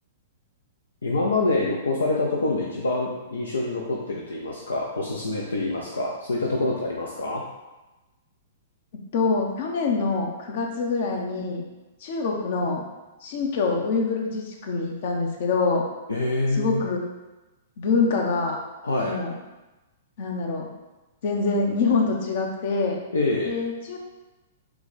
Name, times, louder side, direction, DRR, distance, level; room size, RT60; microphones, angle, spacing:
voice 1, 1.0-7.4 16.1-16.8 18.8-19.2 23.1-23.5, left 2 dB, 85° left, -2 dB, 0.5 m, -26 dB
voice 2, 9.1-11.6 12.0-12.8 13.2-15.8 16.5-17.0 17.8-18.6 19.0-19.3 20.2-20.7 21.2-23.0 23.4-24.0, left 4 dB, 55° left, 1 dB, 0.8 m, -25 dB
4.5 x 2.2 x 4.1 m, 1.1 s
hypercardioid pair, 115°, 0 cm